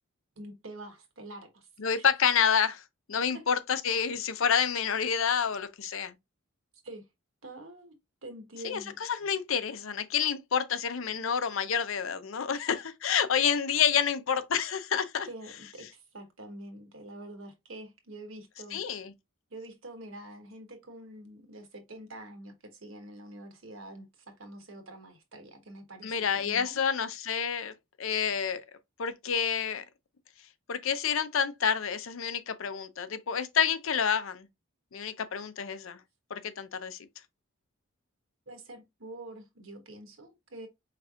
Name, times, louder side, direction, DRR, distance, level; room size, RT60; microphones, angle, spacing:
voice 1, 0.4-2.1 3.3-3.4 4.0-4.1 6.8-7.1 7.4-7.9 8.2-9.0 15.3-18.8 19.5-26.8 38.5-40.7, right 1 dB, 65° right, 1.2 m, -46 dB
voice 2, 1.8-2.8 3.1-6.1 8.6-15.3 18.7-19.1 26.0-28.6 29.0-29.8 30.7-34.5 34.9-36.0 36.3-37.0, left 7 dB, 65° left, 0.6 m, -28 dB
5.0 x 3.3 x 2.4 m
head